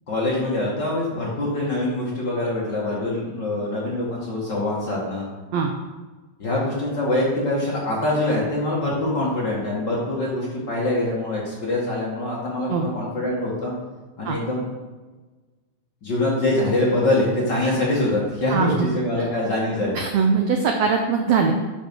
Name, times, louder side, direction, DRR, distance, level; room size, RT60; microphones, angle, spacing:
voice 1, 0.1-5.3 6.4-13.7 14.2-14.6 16.0-20.0, left 1 dB, 40° left, -5 dB, 1.8 m, -24 dB
voice 2, 18.5-18.9 19.2-19.3 19.9-21.5, right 5 dB, 85° right, 3 dB, 1.5 m, -21 dB
9.0 x 4.8 x 6.2 m, 1.3 s
omnidirectional pair, 4.0 m